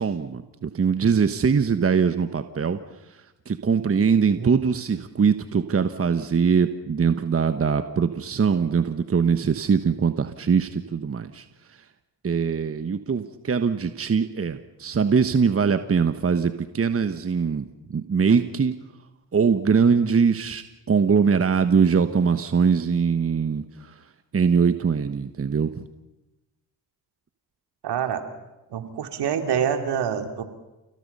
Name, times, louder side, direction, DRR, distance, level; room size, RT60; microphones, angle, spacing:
voice 1, 0.0-2.8 3.5-11.4 12.2-18.7 19.3-23.9 24.3-25.8, right 6 dB, 30° right, 10 dB, 1.3 m, -22 dB
voice 2, 27.8-28.2 28.7-30.4, right 8 dB, 65° right, 6 dB, 2.7 m, -26 dB
30.0 x 17.0 x 5.5 m, 1.0 s
supercardioid pair, 55°, 43 cm